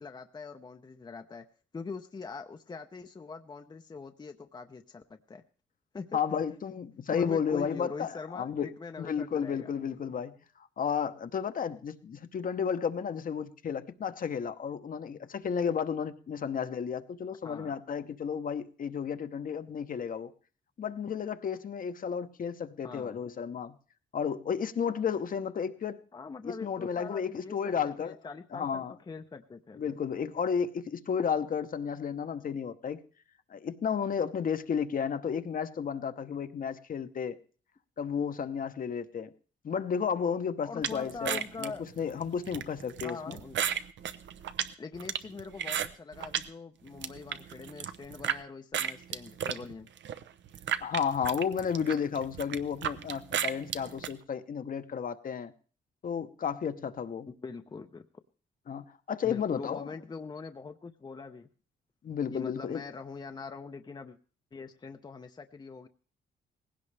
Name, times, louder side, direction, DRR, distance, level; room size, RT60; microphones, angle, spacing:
voice 1, 0.0-1.5 1.7-5.4 5.9-6.2 7.1-9.7 17.4-17.7 22.8-23.2 26.1-30.0 40.6-41.8 43.0-43.6 44.8-49.9 57.3-58.1 59.2-61.5 62.3-64.2 64.5-65.9, left 4 dB, 25° left, 0.7 m, -43 dB
voice 2, 6.1-8.7 9.0-20.3 20.8-23.8 24.1-26.0 26.4-28.2 28.5-28.9 29.8-33.0 33.5-37.4 38.0-39.3 39.6-43.4 50.8-55.5 56.0-57.3 58.7-59.9 62.0-62.8, left 7 dB, 45° left, 0.9 m, -32 dB
sound 1, 40.8-46.5 46.9-48.4 48.7-54.1, right 9 dB, 75° right, 0.8 m, -34 dB
18.5 x 16.5 x 3.4 m
cardioid pair, 125°, 19 cm